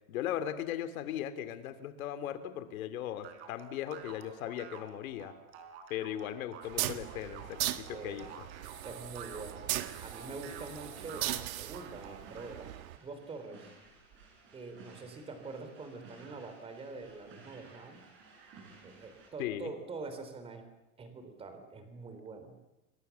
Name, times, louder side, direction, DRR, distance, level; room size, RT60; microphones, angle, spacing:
voice 1, 0.1-5.3 5.9-8.3 19.4-19.7, left 11 dB, 90° left, 9 dB, 3.1 m, -38 dB
sound 1, 3.2-12.5, right 6 dB, 55° right, 4.1 m, -50 dB
sound 2, 6.6-13.0, right 14 dB, 90° right, 1.8 m, -38 dB
voice 2, 7.9-8.3 8.8-9.7 10.0-13.7 14.5-18.0 18.8-20.6 21.0-22.5, right 3 dB, 15° right, 8 dB, 3.3 m, -45 dB
sound 3, 9.8-19.3, right 4 dB, 30° right, 7.7 m, -57 dB
29.0 x 23.0 x 7.1 m, 0.96 s
supercardioid pair, 175°, 40 cm